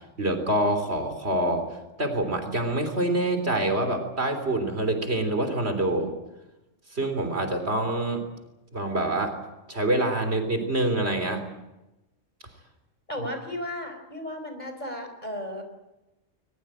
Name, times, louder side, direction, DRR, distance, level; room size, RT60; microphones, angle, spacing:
voice 1, 0.2-1.7 2.0-6.1 6.9-8.2 8.7-9.4 9.7-11.4 13.2-13.3, right 1 dB, 55° right, 7 dB, 4.0 m, -26 dB
voice 2, 13.1-15.6, left 1 dB, 35° left, 5 dB, 4.6 m, -34 dB
22.0 x 21.0 x 9.1 m, 0.97 s
omnidirectional pair, 1.3 m